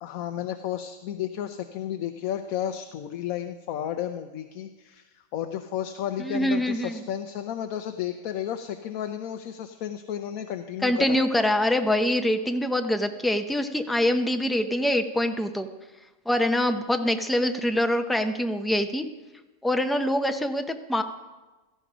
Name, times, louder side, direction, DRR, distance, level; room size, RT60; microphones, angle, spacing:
voice 1, 0.0-11.2, left 10 dB, 80° left, 8 dB, 1.1 m, -32 dB
voice 2, 6.2-7.0 10.8-15.7 16.3-19.0 19.6-21.0, left 1 dB, ahead, 6 dB, 0.3 m, -24 dB
17.0 x 13.5 x 5.1 m, 1.2 s
omnidirectional pair, 1.5 m